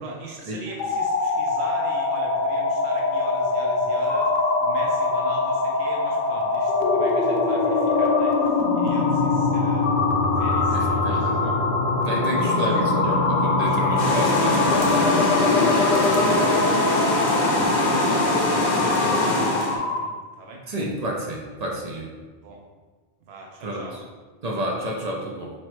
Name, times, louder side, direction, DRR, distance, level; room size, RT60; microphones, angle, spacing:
voice 1, 0.0-10.0 10.3-11.4 12.2-12.9 13.6-14.1 14.9-20.1 20.4-20.6 22.4-22.6 23.3-24.0, right 2 dB, 75° right, -1 dB, 0.9 m, -41 dB
sound 1, 0.7-20.1, left 3 dB, 85° left, 0.9 m, -22 dB
voice 2, 10.7-11.6 12.0-14.9 20.7-22.1 23.6-24.0 24.4-25.5, equal, 45° right, -1 dB, 0.6 m, -30 dB
sound 2, 14.0-19.8, left 1 dB, 50° left, 0.7 m, -23 dB
4.2 x 3.0 x 3.1 m, 1.4 s
omnidirectional pair, 1.1 m